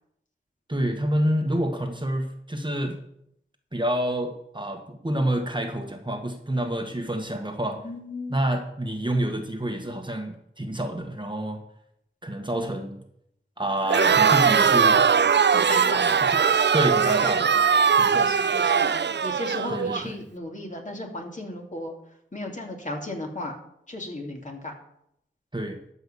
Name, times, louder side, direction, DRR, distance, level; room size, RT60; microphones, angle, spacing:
voice 1, 0.7-3.0 3.7-7.8 8.3-11.6 12.2-13.0 13.6-15.0 15.9-16.4 16.7-17.6 18.0-18.2 19.7-20.1 25.5-25.8, right 1 dB, 20° right, 4 dB, 1.5 m, -28 dB
voice 2, 7.7-8.4 15.5-16.1 18.1-18.9 19.2-21.9 22.3-23.6 23.9-24.7, left 1 dB, 35° left, 1 dB, 2.6 m, -35 dB
Crowd, 13.9-20.0, right 6 dB, 55° right, 0.5 m, -20 dB
13.0 x 5.7 x 7.0 m, 0.75 s
wide cardioid pair, 60°, 21 cm